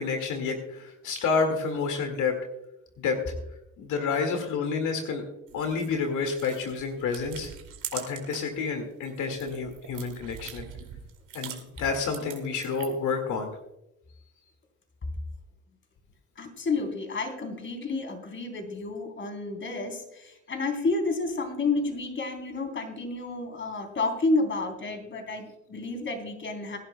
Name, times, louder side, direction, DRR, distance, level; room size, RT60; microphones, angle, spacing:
voice 1, 0.0-2.3 3.0-3.2 3.8-5.2 5.5-7.5 7.9-10.7 11.3-13.5, left 5 dB, 85° left, 4 dB, 2.0 m, -29 dB
sound 1, 5.5-8.6 8.9-13.1, right 9 dB, 85° right, 2.4 m, -43 dB
voice 2, 16.4-26.8, left 3 dB, 40° left, 4 dB, 3.5 m, -30 dB
23.5 x 11.5 x 2.2 m, 0.88 s
cardioid pair, 90°, 30 cm